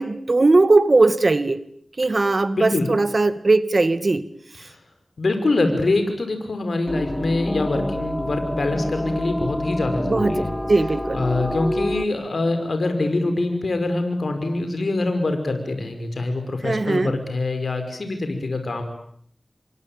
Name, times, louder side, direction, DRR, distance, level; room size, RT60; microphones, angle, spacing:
voice 1, 0.0-1.6 2.0-4.2 10.1-11.2 16.6-17.1, right 3 dB, 60° right, 13 dB, 2.1 m, -19 dB
voice 2, 2.5-2.9 4.6-4.8 5.2-10.5 11.1-18.8, left 2 dB, 85° left, 7 dB, 5.3 m, -24 dB
sound 1, 6.9-12.1, left 1 dB, 10° left, 1.9 m, -27 dB
28.5 x 23.5 x 8.9 m, 0.64 s
wide cardioid pair, 50°, 0 cm